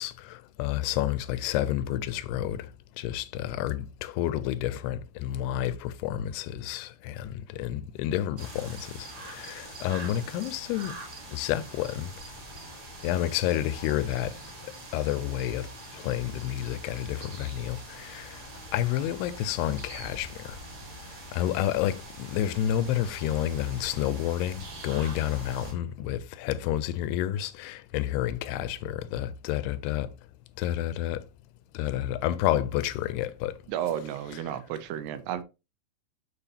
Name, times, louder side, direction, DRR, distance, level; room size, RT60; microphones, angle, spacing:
voice 1, 0.0-2.7 3.0-10.9 11.3-12.1 13.0-14.3 14.9-15.7 15.9-18.4 18.7-20.6 21.3-30.1 30.6-31.2 31.7-33.5, left 12 dB, 85° left, 2.7 m, -30 dB
sound 1, 8.4-25.7, right 1 dB, 45° right, 1.3 m, -44 dB
voice 2, 33.7-35.4, right 10 dB, 85° right, 2.9 m, -32 dB
7.1 x 6.8 x 2.8 m
omnidirectional pair, 4.6 m